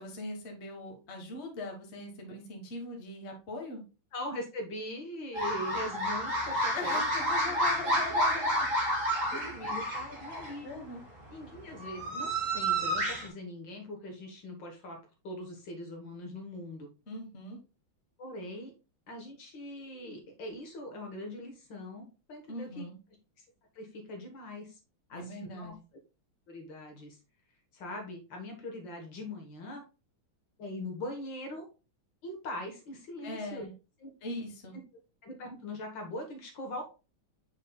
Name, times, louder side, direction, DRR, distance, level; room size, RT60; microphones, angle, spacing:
voice 1, 0.0-3.8 6.7-8.7 9.3-9.5 10.6-11.0 17.1-17.6 22.5-22.9 25.1-25.8 33.2-33.7 34.2-34.8, left 2 dB, 35° left, 2 dB, 1.6 m, -41 dB
voice 2, 4.1-7.0 7.4-7.5 7.8-8.4 9.3-10.7 11.3-15.0 15.2-16.9 18.2-18.7 19.1-22.9 23.8-24.8 25.1-25.7 26.5-27.2 27.7-29.8 30.6-31.7 32.2-33.7 34.0-34.1 35.2-36.8, left 1 dB, 60° left, 3 dB, 2.0 m, -41 dB
sound 1, 5.3-10.6 11.6-13.3, equal, 40° right, 2.0 m, -30 dB
7.4 x 5.7 x 2.3 m, 0.32 s
omnidirectional pair, 2.3 m